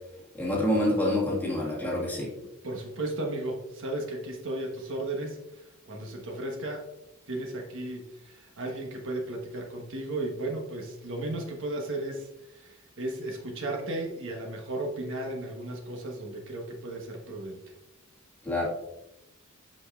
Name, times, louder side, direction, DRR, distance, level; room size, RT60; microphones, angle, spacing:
voice 1, 0.3-2.3 18.4-18.7, left 1 dB, 10° left, -5 dB, 1.7 m, -27 dB
voice 2, 2.6-5.4 5.9-6.8 7.3-12.3 12.5-17.6, right 2 dB, 60° right, 1 dB, 1.2 m, -35 dB
8.5 x 5.3 x 2.4 m, 0.90 s
head